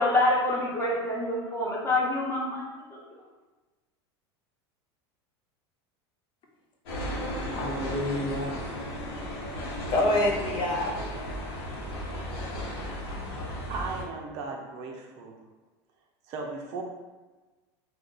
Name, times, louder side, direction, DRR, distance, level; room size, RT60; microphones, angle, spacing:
voice 1, 0.0-2.6 2.9-3.0, left 2 dB, 20° left, -4 dB, 1.0 m, -26 dB
sound 1, 6.9-14.0, equal, 80° left, 1.0 m, -35 dB
voice 2, 7.5-8.5 9.9-10.9, left 1 dB, 40° left, 0 dB, 0.5 m, -27 dB
voice 3, 13.7-15.4 16.3-16.8, right 4 dB, 55° right, 1 dB, 0.6 m, -36 dB
2.4 x 2.4 x 3.8 m, 1.2 s
supercardioid pair, 110°, 13 cm